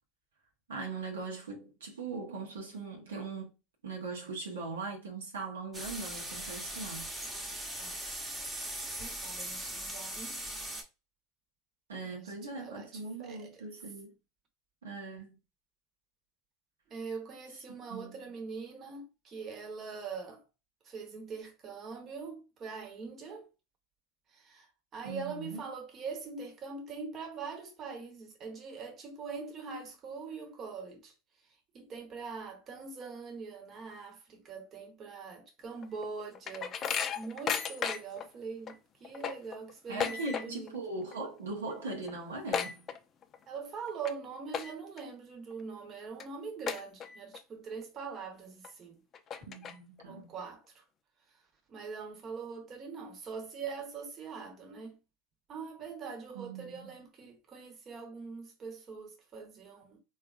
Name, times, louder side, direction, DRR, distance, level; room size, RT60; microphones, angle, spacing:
voice 1, 0.7-3.5 3.8-7.1 11.9-14.1 14.8-15.4 17.9-18.2 25.0-25.6 39.9-42.9 49.5-50.3 56.3-57.0, right 3 dB, 90° right, 0.8 m, -40 dB
sound 1, 5.7-10.8, right 1 dB, 15° right, 0.9 m, -39 dB
voice 2, 7.2-7.9 9.0-10.4 12.0-13.6 16.9-20.4 20.8-23.5 24.3-31.1 31.7-36.8 37.1-40.8 43.5-49.0 50.1-50.8 51.7-55.0 55.5-60.0, right 5 dB, 40° right, 1.0 m, -43 dB
sound 2, 35.8-38.3 38.7-38.8 39.0-40.8 41.0-41.4 41.7-41.8 42.0-43.4 43.9-44.1 44.5-45.0 45.5-45.6 46.2-46.3 46.7-47.4 47.8-47.9 48.6-48.7 49.1-50.0, left 7 dB, 35° left, 0.4 m, -35 dB
3.5 x 2.4 x 2.4 m
hypercardioid pair, 90°, 0 cm